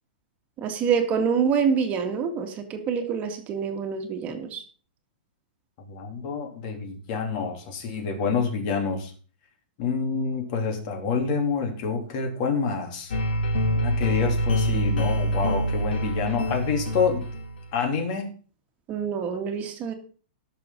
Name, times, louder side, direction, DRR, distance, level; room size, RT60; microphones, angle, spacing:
voice 1, 0.6-4.6 18.9-19.9, right 6 dB, 25° right, 5 dB, 1.9 m, -26 dB
voice 2, 5.9-9.1 9.8-13.1 13.8-17.2 17.7-18.3, left 5 dB, 45° left, 3 dB, 3.2 m, -27 dB
sound 1, 13.1-17.7, equal, 85° left, 2.6 m, -25 dB
17.0 x 6.8 x 3.9 m, 0.40 s
hypercardioid pair, 150°, 6 cm